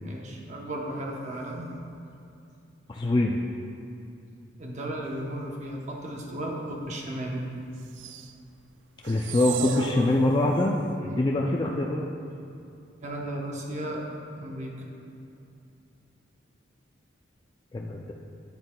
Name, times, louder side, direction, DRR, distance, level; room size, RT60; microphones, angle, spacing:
voice 1, 0.0-1.7 4.6-7.4 11.0-11.3 13.0-14.1 14.4-14.7, right 1 dB, 40° right, -1 dB, 0.9 m, -35 dB
voice 2, 2.9-3.4 9.0-10.7 11.0-12.1 17.7-18.1, left 2 dB, 25° left, -1 dB, 0.3 m, -24 dB
sound 1, 7.8-8.3 9.0-10.7, right 8 dB, 75° right, 0.4 m, -36 dB
9.4 x 8.0 x 2.3 m, 2.6 s
head